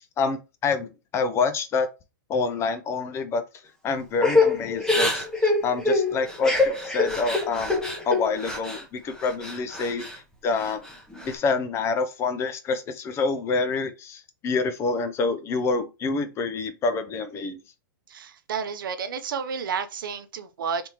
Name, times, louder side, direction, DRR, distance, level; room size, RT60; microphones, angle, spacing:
voice 1, 0.2-1.9 2.3-3.4 3.8-10.8 11.3-17.6, left 4 dB, 25° left, 0.5 m, -27 dB
Crying sobbing / Breathing, 4.2-8.8 9.2-10.2 10.6-11.3, left 3 dB, 5° left, 0.8 m, -25 dB
voice 2, 18.1-20.9, right 6 dB, 80° right, 0.6 m, -31 dB
3.4 x 2.7 x 2.9 m
hypercardioid pair, 125°, 11 cm